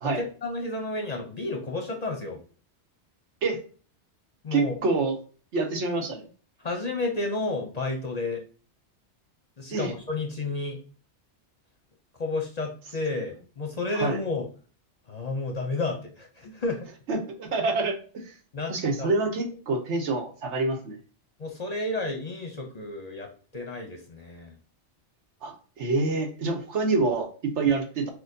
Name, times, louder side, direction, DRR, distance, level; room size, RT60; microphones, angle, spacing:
voice 1, 0.0-2.4 4.4-4.7 6.6-8.4 9.6-10.8 12.2-14.5 15.1-16.9 18.5-19.1 21.4-24.6, left 2 dB, 45° left, 1 dB, 0.6 m, -31 dB
voice 2, 4.5-5.2 5.5-6.2 9.7-9.9 13.9-14.2 17.1-18.0 18.2-18.3 18.7-20.9 25.4-28.1, right 3 dB, 80° right, 3 dB, 1.2 m, -26 dB
6.1 x 2.2 x 2.6 m, 0.39 s
omnidirectional pair, 1.2 m